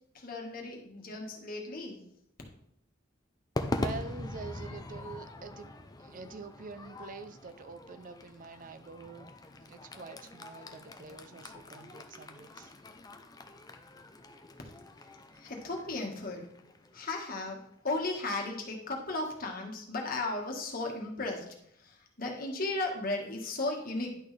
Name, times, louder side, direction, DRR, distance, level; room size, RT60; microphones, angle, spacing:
voice 1, 0.1-2.0 15.3-16.5 16.9-24.2, left 2 dB, 45° left, 1 dB, 1.6 m, -35 dB
Crowd / Fireworks, 3.6-18.0, left 1 dB, 20° left, 0.6 m, -42 dB
voice 2, 3.7-5.7 6.0-9.3 9.6-12.7, right 4 dB, 45° right, 9 dB, 0.5 m, -46 dB
10.5 x 6.2 x 3.3 m, 0.72 s
head